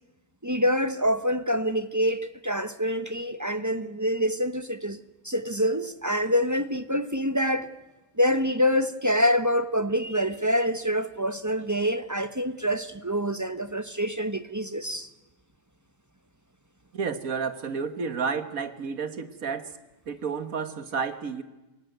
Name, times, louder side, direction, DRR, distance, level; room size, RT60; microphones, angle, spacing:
voice 1, 0.4-5.0 5.2-7.7 8.2-15.1, equal, 15° right, 10 dB, 0.7 m, -26 dB
voice 2, 16.9-19.7 20.1-21.4, right 5 dB, 70° right, 10 dB, 1.8 m, -31 dB
27.0 x 17.5 x 9.2 m, 1.1 s
omnidirectional pair, 1.5 m